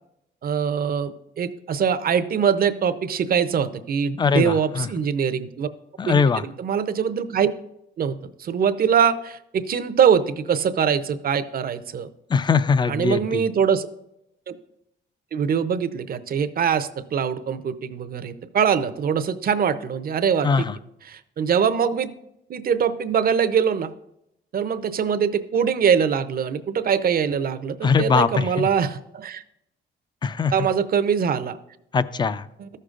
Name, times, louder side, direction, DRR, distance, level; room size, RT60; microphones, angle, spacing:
voice 1, 0.4-5.7 6.1-7.5 8.0-12.1 12.9-13.9 14.5-14.6 15.3-20.7 21.1-22.1 22.5-23.9 24.5-29.4 30.5-31.6 32.6-32.7, right 7 dB, 50° right, 12 dB, 0.6 m, -23 dB
voice 2, 4.2-4.9 6.0-6.4 12.3-13.4 20.4-20.8 27.8-28.7 30.2-30.5 31.9-32.5, left 5 dB, 20° left, 15 dB, 0.4 m, -21 dB
14.0 x 6.5 x 2.5 m, 0.82 s
cardioid pair, 90°, 20 cm